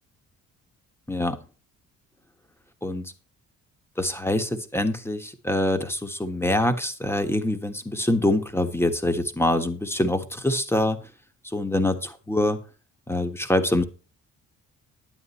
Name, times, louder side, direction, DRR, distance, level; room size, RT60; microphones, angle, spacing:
voice 1, 1.1-1.4 2.8-3.1 4.0-11.0 11.4-12.6 13.1-13.8, left 1 dB, 10° left, 9 dB, 1.5 m, -25 dB
10.0 x 8.8 x 4.3 m, 0.35 s
cardioid pair, 90°, 30 cm